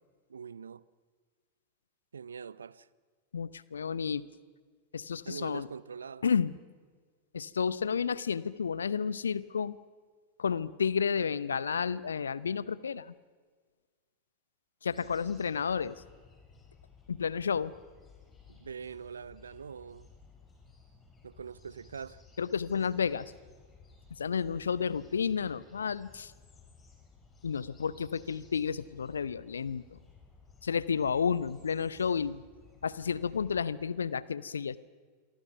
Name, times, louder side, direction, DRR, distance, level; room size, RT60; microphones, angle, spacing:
voice 1, 0.3-0.8 2.1-2.9 5.2-6.3 18.5-20.1 21.2-22.2, right 6 dB, 70° right, 0.6 m, -43 dB
voice 2, 3.3-4.3 4.9-5.7 6.2-6.6 7.3-9.8 10.4-13.1 14.8-15.9 17.1-17.7 22.4-23.3 24.2-26.3 27.4-30.0 30.6-32.4 32.8-34.8, left 6 dB, 70° left, 0.8 m, -31 dB
sound 1, 14.9-33.7, left 4 dB, 20° left, 5.1 m, -58 dB
28.0 x 23.0 x 5.9 m
figure-of-eight pair, 90°, 0 cm